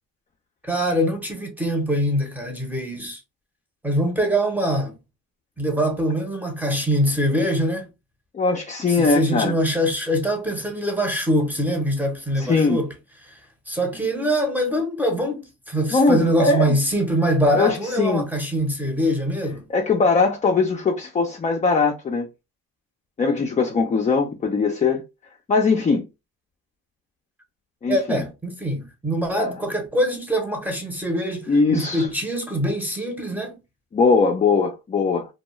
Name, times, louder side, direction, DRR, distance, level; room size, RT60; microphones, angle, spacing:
voice 1, 0.6-3.2 3.8-5.0 5.6-7.9 8.9-12.9 13.2-13.3 13.7-19.7 27.9-33.6, equal, 5° right, 0.7 m, -23 dB
voice 2, 8.3-9.5 12.4-12.8 15.9-16.7 17.5-18.3 19.7-22.3 23.2-25.0 25.5-26.0 27.8-28.2 29.4-29.5 31.5-32.1 33.9-35.3, left 4 dB, 20° left, 0.4 m, -20 dB
2.3 x 2.1 x 3.0 m
cardioid pair, 100°, 37 cm